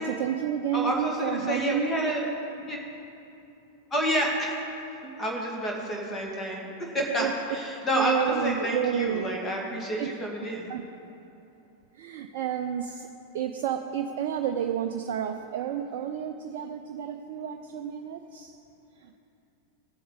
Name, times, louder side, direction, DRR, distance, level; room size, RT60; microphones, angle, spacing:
voice 1, 0.0-2.1 7.2-7.3 7.9-9.4 10.0-10.2 10.7-10.9 11.9-13.1 13.3-18.6 19.0-19.2, right 9 dB, 50° right, 5 dB, 0.5 m, -30 dB
voice 2, 0.7-2.2 2.7-2.8 3.9-4.6 5.2-10.7, equal, 20° left, -1 dB, 2.1 m, -29 dB
16.5 x 7.6 x 4.0 m, 2.7 s
figure-of-eight pair, 90°, 0 cm